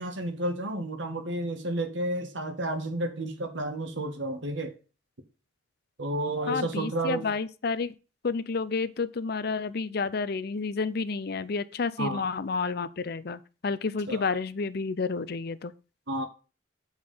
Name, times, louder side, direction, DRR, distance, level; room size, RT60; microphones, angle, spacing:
voice 1, 0.0-4.7 6.0-7.3 12.0-12.3 14.1-14.2 16.1-16.3, right 1 dB, 85° right, 1.6 m, -31 dB
voice 2, 6.5-7.9 8.2-15.7, left 4 dB, 60° left, 0.6 m, -30 dB
7.4 x 4.8 x 5.5 m
head